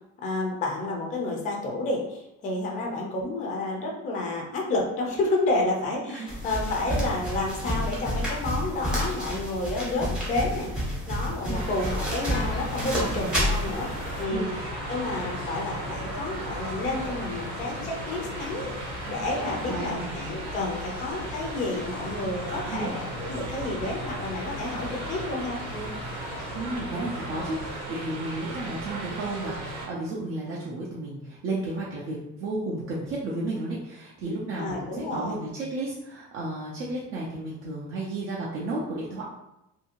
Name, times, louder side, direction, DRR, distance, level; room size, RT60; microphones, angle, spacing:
voice 1, 0.2-13.9 14.2-14.6 14.9-25.9 34.6-35.4, left 2 dB, 25° left, -1 dB, 0.4 m, -30 dB
voice 2, 6.1-6.5 11.4-11.7 12.9-13.4 14.3-14.5 19.6-20.1 22.7-23.0 26.5-39.2, right 2 dB, 40° right, -6 dB, 0.4 m, -33 dB
sound 1, 6.3-14.2, equal, 5° right, 0.7 m, -30 dB
sound 2, 11.5-29.9, right 2 dB, 75° right, 0.8 m, -37 dB
sound 3, 12.3-27.8, left 3 dB, 90° left, 0.6 m, -39 dB
2.7 x 2.5 x 2.8 m, 0.86 s
cardioid pair, 180°, 31 cm